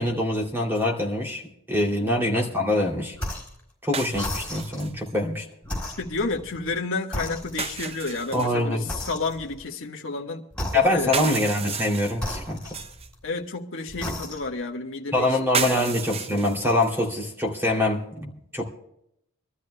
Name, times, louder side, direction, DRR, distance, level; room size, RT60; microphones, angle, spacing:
voice 1, 0.0-1.4 1.7-3.1 3.8-5.4 8.3-8.9 10.7-12.8 15.1-18.6, left 1 dB, 10° right, 0 dB, 2.8 m, -24 dB
sound 1, 0.8-0.9 3.9-5.1 7.6-8.6 11.0-13.1 15.5-17.1, right 6 dB, 30° right, 0.6 m, -33 dB
sound 2, 3.1-3.6 4.1-4.9 5.6-6.8 7.1-7.9 8.9-9.6 10.5-11.2 12.1-13.3 13.9-14.6, left 1 dB, 5° left, 4.1 m, -34 dB
voice 2, 6.0-10.5 10.7-11.1 13.2-15.9, left 3 dB, 60° left, 2 dB, 1.5 m, -31 dB
25.5 x 13.0 x 2.2 m, 0.76 s
head